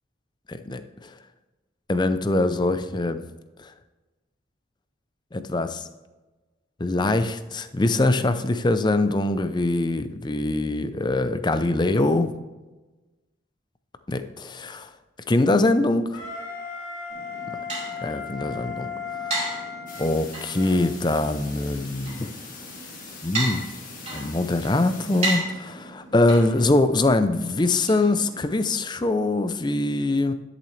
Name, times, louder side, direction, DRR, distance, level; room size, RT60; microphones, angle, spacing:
voice 1, 0.5-0.8 1.9-3.2 3.6-3.7 5.3-5.8 6.8-12.3 14.1-14.9 15.3-16.2 17.5-17.6 18.0-18.9 19.2-19.5 20.0-22.3 23.2-23.6 24.1-30.3, left 2 dB, 20° left, 10 dB, 0.5 m, -23 dB
Wind instrument woodwind instrument, 16.1-20.9, left 6 dB, 85° left, 2.1 m, -36 dB
sound 1, 17.1-28.7, right 2 dB, 35° right, 3.1 m, -35 dB
sound 2, 19.9-25.4, left 5 dB, 40° left, 2.0 m, -43 dB
11.0 x 6.9 x 3.2 m, 1.2 s
head